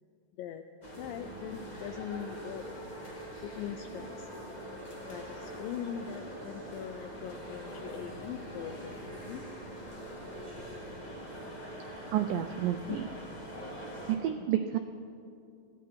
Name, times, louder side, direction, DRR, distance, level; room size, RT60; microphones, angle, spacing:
voice 1, 0.4-0.7 1.0-2.9 3.4-4.3 5.0-9.5 12.9-13.0, left 9 dB, 85° left, 8 dB, 2.0 m, -41 dB
sound 1, 0.8-14.1, equal, 45° left, 0.5 m, -43 dB
voice 2, 12.1-13.0 14.1-14.8, right 11 dB, 85° right, 8 dB, 1.9 m, -30 dB
20.5 x 14.5 x 4.7 m, 2.5 s
omnidirectional pair, 4.5 m